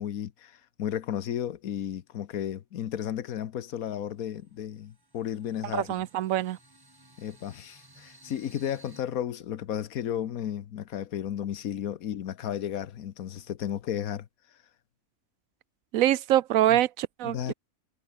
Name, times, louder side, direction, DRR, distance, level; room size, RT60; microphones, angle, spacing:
voice 1, 0.0-5.9 7.2-14.3 16.7-16.8 17.2-17.5, left 10 dB, 90° left, 1.4 m, -33 dB
sound 1, 4.1-9.0, right 1 dB, 15° right, 2.6 m, -57 dB
voice 2, 5.7-6.6 15.9-17.5, right 13 dB, 75° right, 1.0 m, -24 dB
omnidirectional pair, 1.5 m